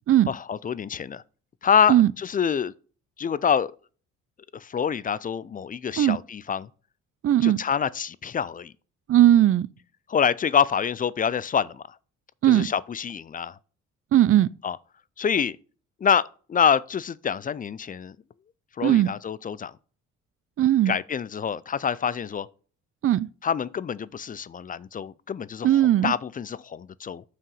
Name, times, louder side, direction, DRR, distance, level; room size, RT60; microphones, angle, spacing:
voice 1, 0.3-1.2 1.6-2.7 3.2-3.7 4.5-6.7 7.4-8.7 10.1-11.8 12.4-13.6 14.6-14.8 15.2-15.6 16.0-18.2 18.8-19.7 20.9-22.5 23.4-25.7 26.0-27.2, left 7 dB, 30° left, 0.4 m, -26 dB
voice 2, 7.2-7.6 9.1-9.7 12.4-12.7 14.1-14.5 18.8-19.1 20.6-21.0 23.0-23.3 25.6-26.1, right 12 dB, 50° right, 0.4 m, -18 dB
5.9 x 4.8 x 5.3 m
cardioid pair, 90°, 30 cm